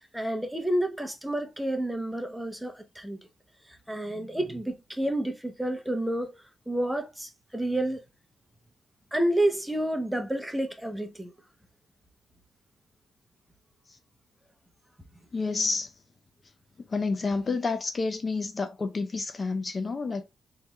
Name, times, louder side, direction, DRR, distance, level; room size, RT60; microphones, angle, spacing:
voice 1, 0.0-3.2 3.7-8.0 9.1-11.3, right 1 dB, 5° right, 0.8 m, -30 dB
voice 2, 15.3-15.9 16.9-20.3, left 4 dB, 35° left, 0.5 m, -29 dB
3.4 x 3.1 x 3.1 m
cardioid pair, 95°, 0 cm